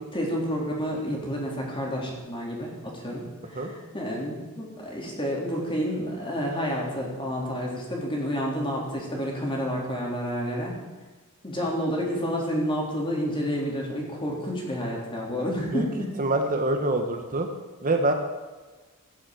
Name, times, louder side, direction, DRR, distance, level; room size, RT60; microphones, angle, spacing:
voice 1, 0.1-10.7 11.4-16.1, equal, 25° left, -2 dB, 3.7 m, -29 dB
voice 2, 16.2-17.5 17.8-18.1, right 2 dB, 40° right, 4 dB, 1.2 m, -25 dB
16.0 x 7.2 x 7.8 m, 1.3 s
head